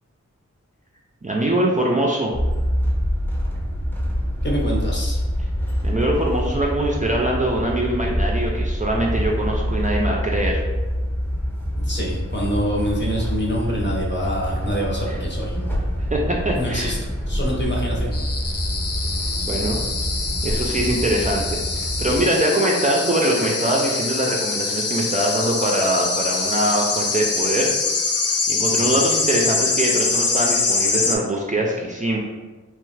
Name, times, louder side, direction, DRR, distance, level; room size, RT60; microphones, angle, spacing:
voice 1, 1.2-2.3 5.8-10.6 16.1-16.2 16.4-16.9 19.4-19.8 20.4-27.8 28.5-32.2, right 1 dB, 25° right, -2 dB, 0.4 m, -22 dB
sound 1, 2.3-22.2, equal, 5° left, 0.7 m, -26 dB
voice 2, 4.4-5.2 11.8-15.6 16.5-17.0 17.3-18.1 18.4-18.6 28.7-29.0, equal, 35° left, -3 dB, 0.8 m, -26 dB
sound 2, 18.1-31.2, left 4 dB, 50° left, 0.4 m, -24 dB
3.0 x 2.4 x 3.2 m, 1.2 s
wide cardioid pair, 75°, 31 cm